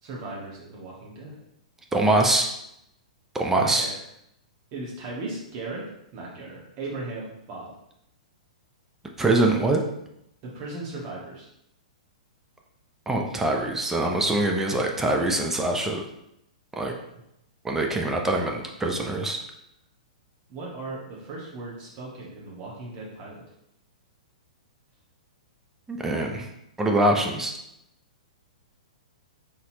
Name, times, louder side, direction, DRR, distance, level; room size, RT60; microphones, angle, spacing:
voice 1, 0.0-1.3 3.4-4.0 4.7-5.8 6.1-7.7 10.4-11.5 17.0-17.2 20.5-23.4, right 2 dB, 40° right, -4 dB, 1.6 m, -37 dB
voice 2, 1.9-2.5 3.3-3.9 9.2-9.8 13.1-16.0 16.8-16.9 17.6-19.4 25.9-26.5 26.8-27.5, right 2 dB, 10° right, 1 dB, 0.5 m, -23 dB
4.2 x 3.8 x 2.9 m, 0.80 s
figure-of-eight pair, 115°, 4 cm